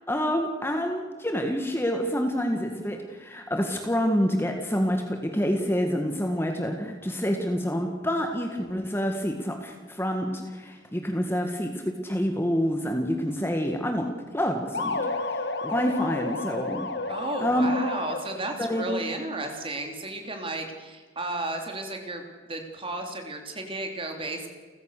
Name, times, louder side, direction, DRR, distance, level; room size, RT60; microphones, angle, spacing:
voice 1, 0.1-15.1 15.3-16.9 17.4-17.7 18.6-19.0, equal, 10° left, 4 dB, 1.7 m, -27 dB
sound 1, 14.7-18.6, left 2 dB, 55° left, 1.7 m, -31 dB
voice 2, 17.1-24.5, right 2 dB, 25° right, 4 dB, 3.3 m, -33 dB
30.0 x 15.0 x 6.6 m, 1.5 s
head